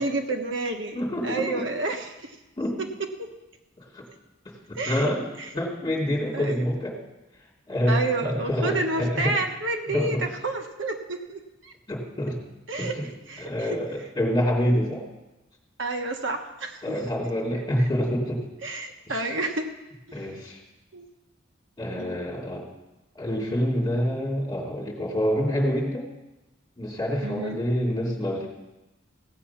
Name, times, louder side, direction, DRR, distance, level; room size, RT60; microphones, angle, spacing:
voice 1, 0.0-2.4 3.2-3.3 4.8-5.1 5.4-5.5 6.3-6.7 7.9-11.7 12.7-13.0 13.3-13.8 15.8-17.0 17.8-17.9 18.6-19.7 20.9-21.1 22.0-22.1 27.2-27.6, right 2 dB, 65° right, 4 dB, 1.2 m, -30 dB
voice 2, 0.9-1.6 2.6-2.8 3.8-4.0 4.4-5.3 5.5-7.0 7.7-9.4 9.9-10.2 11.9-12.4 12.8-13.1 13.4-15.0 16.8-18.4 19.1-19.3 20.1-20.6 21.8-22.6 23.1-26.1 26.8-28.5, equal, 20° left, -3 dB, 2.9 m, -27 dB
16.5 x 8.4 x 5.8 m, 1.0 s
head